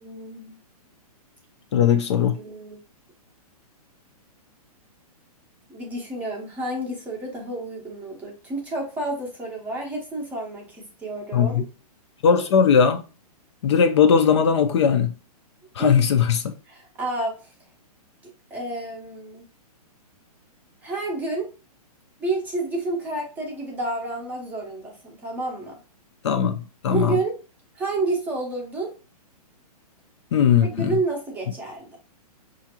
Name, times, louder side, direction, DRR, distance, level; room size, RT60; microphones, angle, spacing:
voice 1, 0.0-0.6 1.8-1.9 2.3-2.8 5.7-11.6 15.8-16.0 16.7-17.4 18.5-19.5 20.8-21.5 22.2-25.7 26.9-27.4 27.8-28.9 30.8-32.0, right 2 dB, 10° right, 0.6 m, -30 dB
voice 2, 1.7-2.4 11.3-11.6 12.2-13.0 13.6-15.1 15.8-16.5 26.2-27.1 30.3-31.0, left 7 dB, 45° left, 0.4 m, -19 dB
5.5 x 2.5 x 2.8 m
hypercardioid pair, 165°, 20 cm